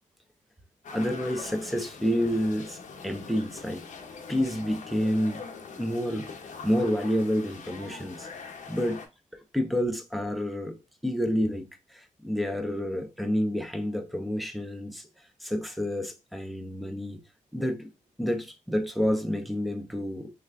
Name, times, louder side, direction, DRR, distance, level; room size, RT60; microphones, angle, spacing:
sound 1, 0.8-9.1, left 5 dB, 65° left, 0.7 m, -43 dB
voice 1, 0.9-2.8 3.0-3.8 4.3-5.4 5.8-6.3 6.6-8.3 8.7-9.0 9.5-10.8 11.0-11.6 11.9-15.1 15.4-17.2 17.5-17.9 18.2-20.3, equal, ahead, 0.5 m, -29 dB
3.2 x 2.3 x 3.3 m
wide cardioid pair, 165°, 14 cm